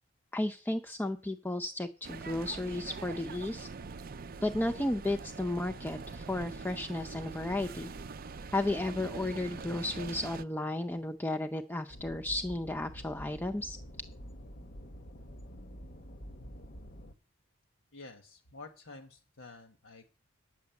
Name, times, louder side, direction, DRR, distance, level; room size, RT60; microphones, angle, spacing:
voice 1, 0.3-3.7 4.4-7.9 8.5-13.8, left 1 dB, 10° left, 5 dB, 0.6 m, -33 dB
sound 1, 2.0-10.4, right 4 dB, 45° right, 0.5 m, -43 dB
sound 2, 11.9-17.1, equal, 45° left, 0.9 m, -47 dB
voice 2, 17.9-20.2, left 3 dB, 70° left, 5 dB, 1.4 m, -50 dB
9.7 x 8.3 x 7.1 m, 0.36 s
head